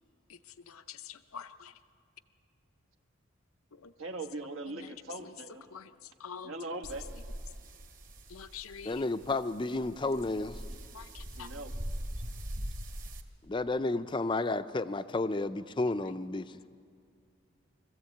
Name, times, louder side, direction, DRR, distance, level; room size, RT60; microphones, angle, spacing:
voice 1, 0.7-1.7 3.7-3.9 4.7-4.9 5.7-5.9 6.2-6.5 8.3-8.9 10.9-11.5, left 7 dB, 85° left, 10 dB, 0.6 m, -46 dB
voice 2, 4.0-5.7 6.4-7.1 11.3-11.7, right 2 dB, 75° right, 5 dB, 1.4 m, -40 dB
sound 1, 6.8-13.2, equal, 40° right, 1.4 m, -42 dB
voice 3, 8.8-10.6 13.5-16.6, left 2 dB, 25° left, 12 dB, 0.4 m, -32 dB
23.0 x 14.5 x 8.5 m, 2.3 s
head